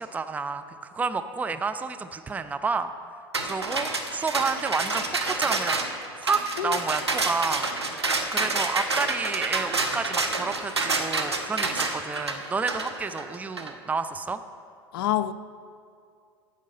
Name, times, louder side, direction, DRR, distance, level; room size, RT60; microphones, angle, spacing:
voice 1, 0.0-2.9 3.4-5.8 6.2-7.7 8.3-14.4, right 4 dB, 10° right, 0.4 m, -30 dB
sound 1, 3.3-13.7, right 3 dB, 90° right, 0.7 m, -28 dB
voice 2, 14.9-15.3, left 13 dB, 60° left, 0.4 m, -26 dB
10.0 x 7.4 x 5.2 m
figure-of-eight pair, 80°, 13 cm